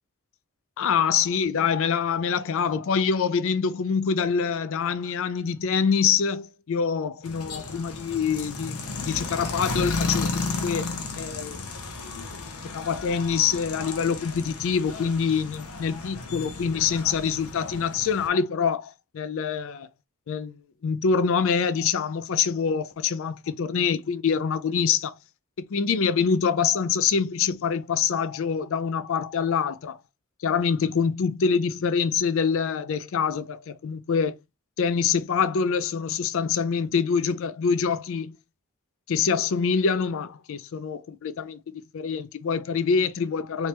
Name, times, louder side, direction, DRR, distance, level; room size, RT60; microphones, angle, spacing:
voice 1, 0.8-11.6 12.6-19.9 20.3-20.5 20.8-25.2 25.6-30.0 30.4-34.4 34.8-38.4 39.1-43.7, left 6 dB, 60° left, 0.4 m, -25 dB
sound 1, 7.2-18.3, left 3 dB, 85° left, 0.8 m, -33 dB
3.2 x 2.9 x 3.2 m
head